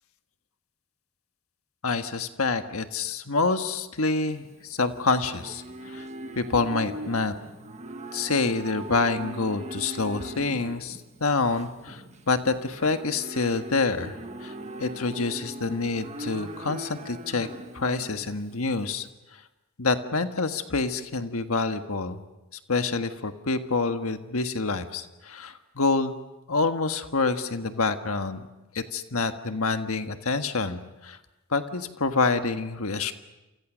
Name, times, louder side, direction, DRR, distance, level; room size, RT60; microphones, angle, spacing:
voice 1, 1.8-6.1 6.3-7.3 8.1-14.2 14.4-14.5 14.8-17.5 17.7-19.1 19.8-22.2 22.7-26.2 26.5-28.5 28.7-31.2 31.5-33.1, left 3 dB, 85° left, 7 dB, 1.5 m, -27 dB
Livestock farm animals working animals, 4.3-19.0, right 1 dB, 30° right, 1.5 m, -40 dB
29.0 x 28.0 x 6.3 m, 0.99 s
head